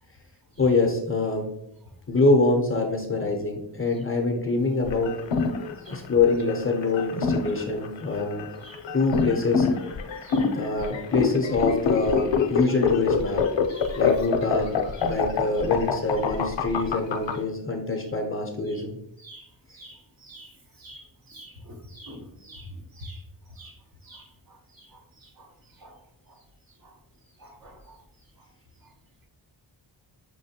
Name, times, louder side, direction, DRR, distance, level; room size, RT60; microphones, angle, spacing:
voice 1, 0.6-1.5 2.1-5.2 5.9-8.4 8.9-9.7 10.5-13.4 14.0-19.0, left 3 dB, 30° left, 1 dB, 0.5 m, -25 dB
sound 1, 4.9-17.3, left 5 dB, 65° left, 0.6 m, -25 dB
voice 2, 21.9-22.7 23.0-23.2 23.6-23.7 24.1-24.2 25.4-25.5 25.8-25.9 27.4-27.7, equal, 45° right, 1 dB, 0.9 m, -44 dB
5.8 x 3.0 x 2.7 m, 0.77 s
wide cardioid pair, 135°, 48 cm